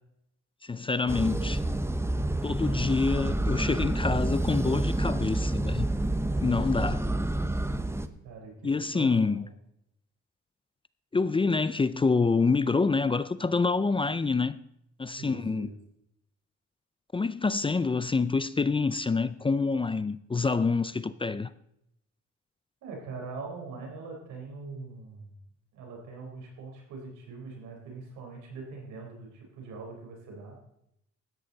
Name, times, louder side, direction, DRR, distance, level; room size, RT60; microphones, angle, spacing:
voice 1, 0.6-1.6 2.4-5.9 6.4-7.0 8.6-9.4 11.1-14.6 15.0-15.7 17.1-21.5, left 4 dB, 20° left, 0.4 m, -27 dB
sound 1, 1.1-8.1, right 1 dB, 10° right, 0.8 m, -28 dB
voice 2, 8.2-9.5 15.2-15.7 22.8-25.3 25.7-30.6, right 4 dB, 90° right, 4.1 m, -42 dB
13.0 x 10.0 x 4.0 m
cardioid pair, 90°, 30 cm